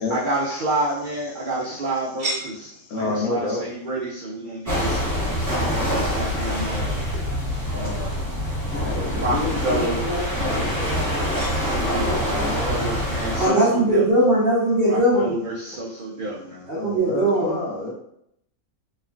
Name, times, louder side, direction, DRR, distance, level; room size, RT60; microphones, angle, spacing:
voice 1, 0.1-2.3 2.9-5.0 5.5-7.1 7.7-8.6 9.1-10.0 11.7-12.4 12.7-14.0 14.9-16.7, right 1 dB, 90° right, 0.4 m, -29 dB
voice 2, 2.8-3.6 8.8-10.9 11.8-12.8 13.2-13.7 16.7-17.9, left 2 dB, 85° left, 1.1 m, -29 dB
sound 1, 4.7-13.5, equal, 10° right, 1.2 m, -25 dB
voice 3, 13.4-15.3 16.7-17.6, right 1 dB, 55° right, 0.7 m, -20 dB
3.1 x 2.2 x 2.5 m
omnidirectional pair, 1.5 m